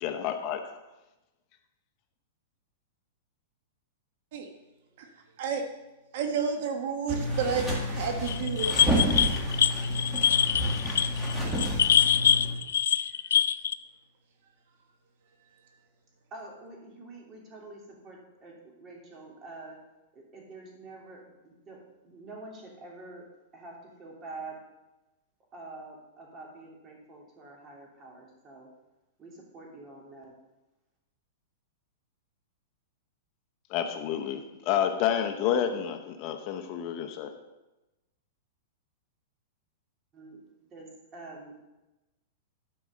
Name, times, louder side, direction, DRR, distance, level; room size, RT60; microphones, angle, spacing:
voice 1, 0.0-0.6 33.7-37.3, left 9 dB, 40° left, 7 dB, 0.8 m, -29 dB
voice 2, 6.1-9.2, right 5 dB, 60° right, 4 dB, 1.4 m, -31 dB
sound 1, 7.1-12.5, equal, 10° right, 2.2 m, -30 dB
sound 2, 8.3-13.7, left 9 dB, 90° left, 0.4 m, -24 dB
voice 3, 16.3-19.8 20.1-23.3 23.5-24.6 25.5-28.7 29.2-30.3 40.1-40.4 40.7-41.6, right 2 dB, 25° right, -1 dB, 2.7 m, -46 dB
12.0 x 4.9 x 6.5 m, 1.0 s
supercardioid pair, 150°, 0 cm